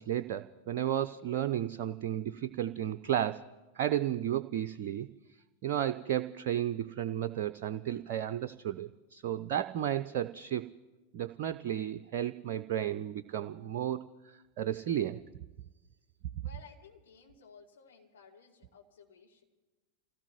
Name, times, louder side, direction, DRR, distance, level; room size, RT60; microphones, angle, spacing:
voice 1, 0.0-3.4 3.7-5.1 5.6-10.7 11.1-15.2, right 11 dB, 50° right, 9 dB, 0.5 m, -33 dB
voice 2, 16.4-19.4, left 6 dB, 65° left, -1 dB, 2.9 m, -56 dB
28.0 x 17.0 x 3.0 m, 1.2 s
figure-of-eight pair, 90°, 0 cm